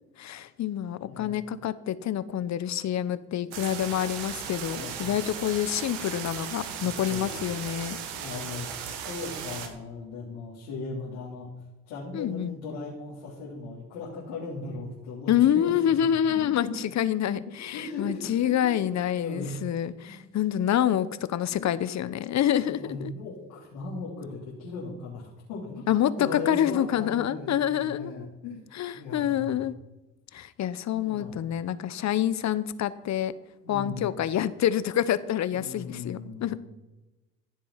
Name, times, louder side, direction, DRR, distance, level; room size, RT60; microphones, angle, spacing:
voice 1, 0.2-8.0 12.1-12.6 15.3-23.1 25.9-28.3 28.7-29.7 30.3-33.3 33.7-36.6, left 10 dB, 50° left, 16 dB, 1.0 m, -27 dB
voice 2, 1.0-1.4 4.7-5.4 6.8-7.5 8.2-8.7 9.1-11.5 11.9-16.7 17.7-19.5 20.0-20.2 21.5-21.8 22.4-25.8 26.2-28.6 28.9-29.6 31.0-31.4 33.6-34.2 35.5-36.6, left 3 dB, 80° left, -6 dB, 3.7 m, -38 dB
sound 1, 3.5-9.7, right 8 dB, 80° right, 2.0 m, -37 dB
15.5 x 7.4 x 5.8 m, 1.1 s
hypercardioid pair, 65°, 36 cm